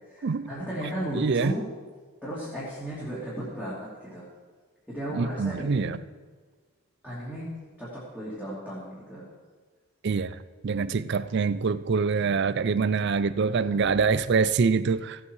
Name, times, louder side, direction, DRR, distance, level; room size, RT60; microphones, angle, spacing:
voice 1, 0.1-1.6 2.2-4.3 4.9-5.9 7.0-7.5 7.8-9.2 13.5-14.0, right 1 dB, 5° left, -10 dB, 2.8 m, -35 dB
voice 2, 1.1-1.5 5.1-6.0 10.0-10.4 10.6-15.2, right 5 dB, 50° right, 15 dB, 0.4 m, -25 dB
16.0 x 8.3 x 4.7 m, 1.5 s
head